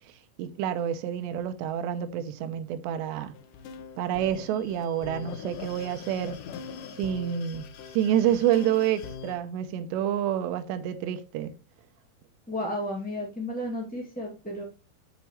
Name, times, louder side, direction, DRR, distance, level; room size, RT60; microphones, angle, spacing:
voice 1, 0.4-3.3 4.0-6.4 7.0-7.6 7.9-11.5, right 10 dB, 80° right, 3.0 m, -28 dB
sound 1, 3.3-9.4, left 6 dB, 75° left, 2.0 m, -42 dB
voice 2, 12.5-14.6, left 1 dB, 10° left, 0.6 m, -33 dB
8.2 x 7.3 x 3.1 m
omnidirectional pair, 5.0 m